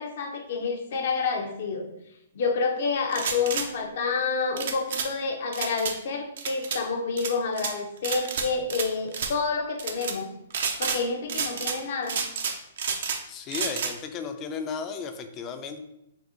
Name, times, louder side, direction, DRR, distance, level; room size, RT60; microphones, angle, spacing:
voice 1, 0.0-1.9 2.3-10.3 10.8-12.3, left 4 dB, 60° left, 4 dB, 0.7 m, -28 dB
sound 1, 3.1-3.7 4.6-5.1 5.5-5.9 6.4-6.8 7.2-7.7 8.0-8.9 9.1-9.3 9.8-10.1 10.5-11.0 11.3-11.8 12.1-13.2 13.5-13.9, right 6 dB, 60° right, 0.5 m, -30 dB
voice 2, 13.3-15.8, left 6 dB, 30° left, 7 dB, 0.5 m, -34 dB
4.1 x 2.7 x 3.6 m, 0.82 s
hypercardioid pair, 125°, 0 cm